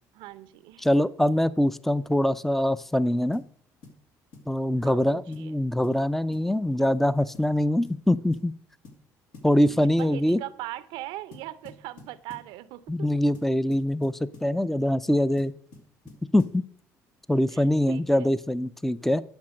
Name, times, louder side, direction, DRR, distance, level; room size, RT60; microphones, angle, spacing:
voice 1, 0.1-0.9 4.8-5.5 9.7-13.1 17.5-18.3, right 16 dB, 75° right, 0.6 m, -40 dB
voice 2, 0.8-3.4 4.5-8.5 9.4-10.4 12.9-15.5 16.3-16.6 17.3-19.2, left 1 dB, 5° left, 0.5 m, -23 dB
sound 1, 3.3-3.5 3.8-4.0 4.3-4.5 4.8-5.0 5.3-5.5 5.8-6.0 6.3-6.5 6.8-7.0 7.3-7.6 7.8-8.0 8.3-8.5 8.8-9.0 9.3-10.5 11.3-12.5 13.3-14.5 15.4-16.6, left 3 dB, 70° left, 2.7 m, -48 dB
11.5 x 5.8 x 6.3 m
hypercardioid pair, 60°, 8 cm